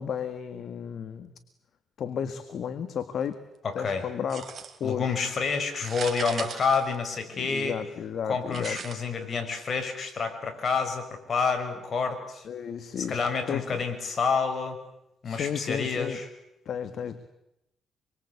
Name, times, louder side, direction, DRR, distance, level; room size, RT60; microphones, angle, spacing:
voice 1, 0.0-1.3 2.0-3.4 3.8-4.5 4.8-5.2 7.3-8.8 12.4-13.7 15.2-16.2 16.7-17.3, left 7 dB, 60° left, 10 dB, 1.8 m, -33 dB
voice 2, 3.6-4.1 4.8-7.8 8.3-12.5 13.0-14.8 15.2-16.3, left 5 dB, 45° left, 6 dB, 6.0 m, -28 dB
sound 1, 4.3-5.0 5.7-7.5 8.5-8.9, right 7 dB, 50° right, 3.5 m, -38 dB
27.0 x 23.5 x 8.4 m, 0.84 s
cardioid pair, 90°, 0 cm